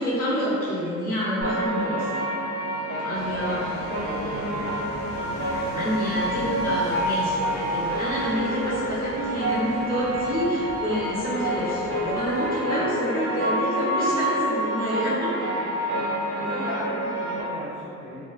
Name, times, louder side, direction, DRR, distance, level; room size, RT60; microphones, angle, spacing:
voice 1, 0.0-2.1 2.7-4.8 5.1-15.3, equal, 30° left, -10 dB, 1.1 m, -28 dB
sound 1, 0.6-10.7, equal, 65° right, 0.4 m, -44 dB
sound 2, 1.4-17.4, right 1 dB, 45° right, 0.9 m, -28 dB
sound 3, 3.1-12.6, equal, 50° left, 0.8 m, -41 dB
voice 2, 3.2-3.6 16.4-18.3, left 1 dB, 75° left, -8 dB, 0.7 m, -36 dB
2.3 x 2.3 x 2.3 m, 2.4 s
cardioid pair, 90°, 30 cm